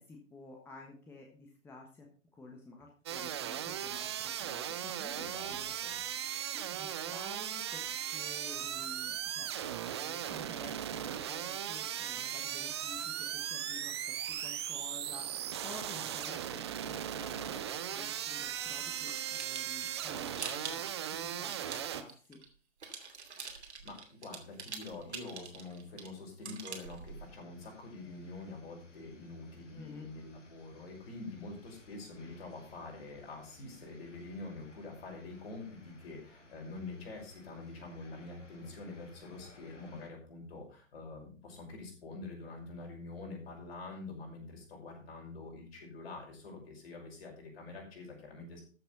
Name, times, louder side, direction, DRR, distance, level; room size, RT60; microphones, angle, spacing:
voice 1, 0.0-2.1 2.3-6.0 6.5-7.8 8.1-9.5 9.9-14.0 14.4-20.8 21.2-22.4 29.7-30.1, left 3 dB, 5° left, 1 dB, 1.3 m, -51 dB
sound 1, 3.1-22.0, right 10 dB, 20° right, 0.6 m, -38 dB
voice 2, 5.1-6.0 23.8-48.6, left 3 dB, 50° left, 0 dB, 5.8 m, -46 dB
sound 2, 19.0-22.5 22.8-27.3, right 5 dB, 60° right, 2.8 m, -45 dB
sound 3, 27.0-40.1, left 2 dB, 65° left, 3.1 m, -59 dB
13.5 x 6.9 x 5.3 m, 0.38 s
figure-of-eight pair, 125°, 38 cm